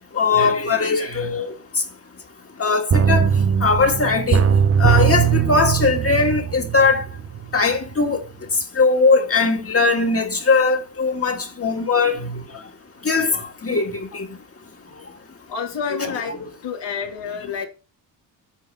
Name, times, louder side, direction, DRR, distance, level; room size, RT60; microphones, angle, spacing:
voice 1, 0.2-1.5 2.6-2.8 3.1-3.3 3.6-4.4 4.8-7.0 7.5-8.2 8.8-12.3 13.1-13.3 13.6-14.3 16.0-16.5, left 4 dB, 30° left, 1.8 m, -19 dB
sound 1, 2.9-7.6 7.9-8.0, right 8 dB, 30° right, 0.8 m, -19 dB
voice 2, 15.5-16.3 16.6-17.7, left 6 dB, 75° left, 2.6 m, -28 dB
8.9 x 5.4 x 6.5 m
cardioid pair, 120°, 44 cm